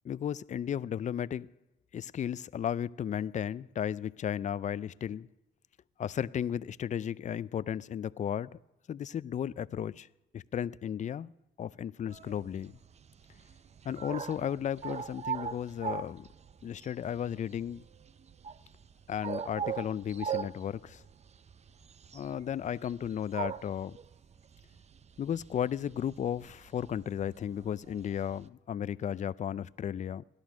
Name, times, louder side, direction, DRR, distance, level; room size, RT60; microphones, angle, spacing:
voice 1, 0.0-1.5 1.9-5.3 6.0-8.6 8.9-10.1 10.3-11.3 11.6-12.8 13.8-16.3 16.6-17.8 19.1-21.0 22.1-24.0 25.2-30.2, left 9 dB, 40° left, 0.4 m, -34 dB
sound 1, 12.1-28.5, right 7 dB, 35° right, 0.5 m, -41 dB
17.5 x 11.5 x 6.2 m
cardioid pair, 90°, 20 cm